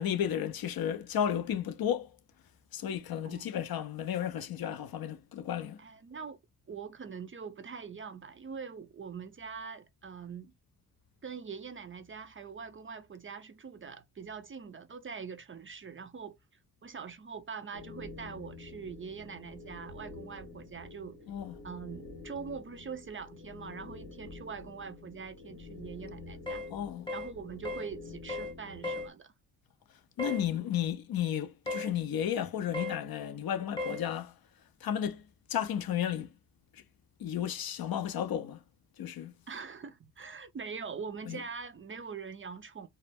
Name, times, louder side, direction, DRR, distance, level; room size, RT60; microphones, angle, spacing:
voice 1, 0.0-2.1 2.7-5.8 21.3-21.6 26.7-27.1 30.2-34.3 34.8-36.3 36.7-36.8 37.2-38.6 39.0-39.3 41.3-41.4, left 9 dB, 65° left, 0.5 m, -33 dB
voice 2, 5.8-6.4 6.7-10.5 11.2-16.4 16.8-21.2 21.6-26.6 27.1-29.3 39.5-42.9, right 6 dB, 30° right, 0.4 m, -43 dB
sound 1, 17.7-29.1, left 3 dB, 90° left, 1.0 m, -48 dB
sound 2, 26.5-26.7 27.1-27.3 27.7-27.9 28.3-28.5 28.8-29.1 30.2-30.4 31.7-31.9 32.7-33.0 33.8-34.0, left 2 dB, 10° left, 0.8 m, -35 dB
2.1 x 2.1 x 3.3 m
cardioid pair, 50°, 40 cm